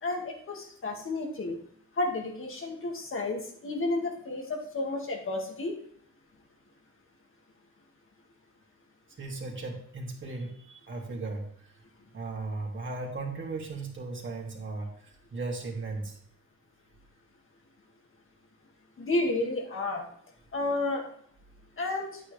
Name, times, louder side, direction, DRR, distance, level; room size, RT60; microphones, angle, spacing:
voice 1, 0.0-1.6 2.0-5.8 19.0-20.0 20.5-21.0 21.8-22.2, left 2 dB, 45° left, 1 dB, 2.2 m, -31 dB
voice 2, 9.2-11.5 12.1-14.9 15.3-16.2, right 3 dB, 40° right, -1 dB, 2.9 m, -36 dB
9.7 x 8.9 x 3.4 m, 0.62 s
cardioid pair, 90°, 30 cm